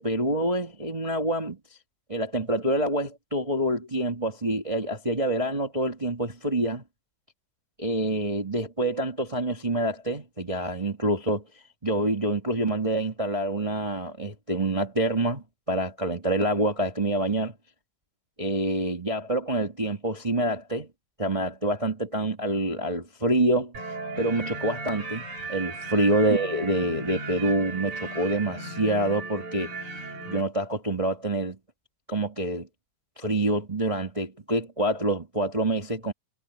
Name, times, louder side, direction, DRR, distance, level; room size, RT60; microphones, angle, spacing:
voice 1, 0.0-1.6 2.1-6.8 7.8-11.4 11.8-17.5 18.4-20.9 21.2-23.7 24.2-29.7 30.2-31.6 32.1-32.7 33.2-36.1, right 1 dB, 30° right, 0.5 m, -26 dB
sound 1, 23.7-30.4, right 3 dB, 60° right, 6.7 m, -36 dB
omnidirectional pair, 3.8 m